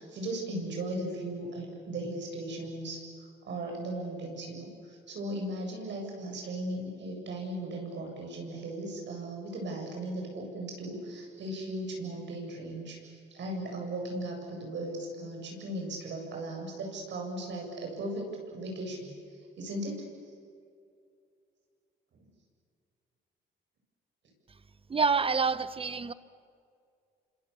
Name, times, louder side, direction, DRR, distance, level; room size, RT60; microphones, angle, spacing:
voice 1, 0.0-19.1 19.6-20.0 22.1-22.3, right 1 dB, 65° right, 1 dB, 7.8 m, -37 dB
voice 2, 24.9-26.1, right 5 dB, 30° right, 15 dB, 1.0 m, -27 dB
28.5 x 26.0 x 7.1 m, 2.4 s
cardioid pair, 90°, 20 cm